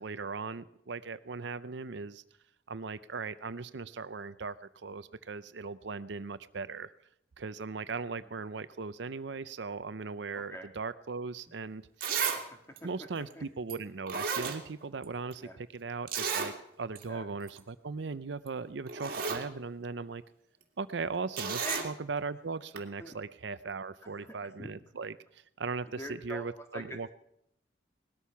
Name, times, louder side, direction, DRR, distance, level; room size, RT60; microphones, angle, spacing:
voice 1, 0.0-2.2 2.7-6.9 7.4-12.3 12.8-20.2 20.8-27.1, right 4 dB, 65° right, 14 dB, 0.6 m, -38 dB
voice 2, 10.3-10.7 12.2-12.4 13.4-13.5 15.4-15.6 17.1-17.3 21.6-21.8 23.0-23.2 24.0-24.7 25.8-27.1, equal, 15° left, 4 dB, 1.8 m, -44 dB
Zipper (clothing), 11.5-11.6 12.0-12.4 12.8-12.9 13.7-13.8 14.1-15.0 15.3-15.4 16.1-16.5 17.0-17.1 17.4-17.6 18.5-18.6 18.9-19.4 21.4-21.9 22.8-22.9, right 6 dB, 50° right, 2.2 m, -33 dB
19.0 x 13.0 x 5.8 m, 0.74 s
head